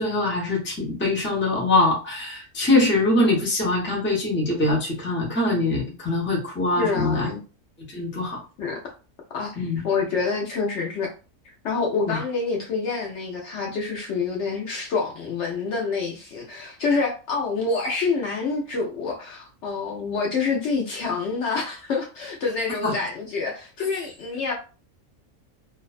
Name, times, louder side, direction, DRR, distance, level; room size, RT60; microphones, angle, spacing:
voice 1, 0.0-7.3 7.9-8.4 9.6-9.8 12.1-12.2 22.8-22.9, left 2 dB, 10° left, 0.6 m, -23 dB
voice 2, 6.8-7.4 8.6-8.8 9.3-11.1 11.6-24.5, left 4 dB, 65° left, 0.8 m, -27 dB
2.5 x 2.2 x 2.3 m
omnidirectional pair, 1.4 m